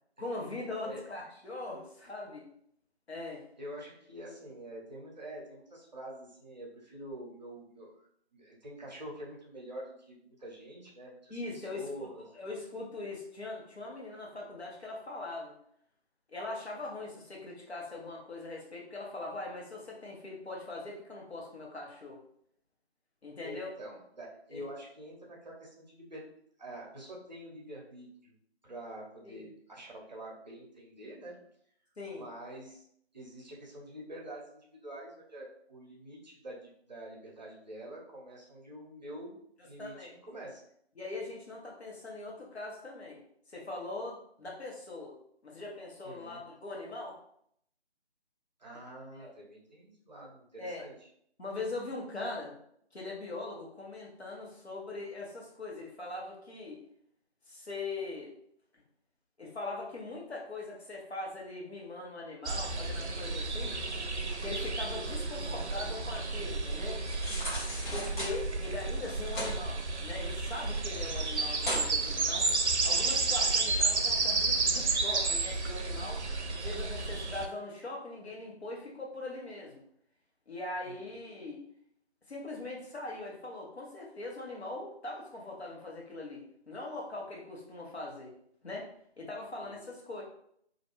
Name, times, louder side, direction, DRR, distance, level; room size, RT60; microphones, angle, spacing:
voice 1, 0.2-2.5 3.1-3.4 11.3-15.5 16.3-22.2 23.2-23.7 24.5-24.6 29.2-29.5 32.0-32.3 39.8-40.1 41.0-43.2 43.5-45.1 45.4-47.2 49.2-49.3 50.6-50.8 51.4-52.5 52.9-56.8 57.5-58.3 59.4-63.8 64.4-67.0 67.9-72.5 72.8-76.2 76.6-79.8 80.5-81.6 82.3-88.3 88.6-88.9 89.2-90.2, left 2 dB, 70° left, -2 dB, 1.0 m, -41 dB
voice 2, 3.6-8.0 8.3-12.3 23.4-26.2 26.6-28.3 28.6-31.4 32.1-32.9 33.1-39.3 39.6-40.6 46.0-46.4 48.6-50.9 68.5-68.6 80.8-81.2 89.6-89.7, right 1 dB, 40° right, -3 dB, 0.7 m, -46 dB
sound 1, 62.4-77.5, right 3 dB, 90° right, 0.5 m, -31 dB
sound 2, 67.0-68.3 69.0-69.5 69.9-70.8 71.1-71.2 71.5-71.9 72.4-72.5, left 1 dB, 45° left, 1.0 m, -37 dB
2.4 x 2.2 x 3.0 m, 0.68 s
figure-of-eight pair, 155°, 33 cm